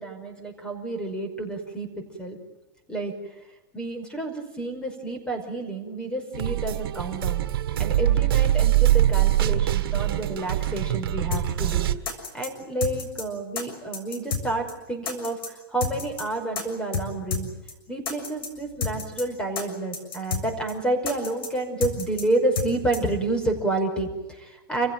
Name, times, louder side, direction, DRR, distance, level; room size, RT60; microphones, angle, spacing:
voice 1, 0.0-1.9 2.2-2.4 2.9-3.4 3.7-7.4 7.8-11.9 12.3-17.5 17.9-24.9, right 2 dB, 5° left, 5 dB, 5.5 m, -29 dB
sound 1, 6.3-11.9, right 13 dB, 70° right, 1.7 m, -23 dB
sound 2, 11.3-11.4 11.7-11.8 12.1-12.5 12.8-13.2 13.6-13.7 13.9-14.4 14.7-14.8 15.1-15.5 15.8-16.2 16.6-16.7 16.9-17.1 17.3-17.4 17.7-17.8 18.1-18.5 18.8-19.2 19.6-19.7 19.9-20.4 20.7-20.8 21.1-21.5 21.8-22.2 22.6-22.7 22.9-23.0, left 5 dB, 80° left, 6.6 m, -29 dB
28.5 x 16.0 x 9.3 m, 1.1 s
hypercardioid pair, 135°, 12 cm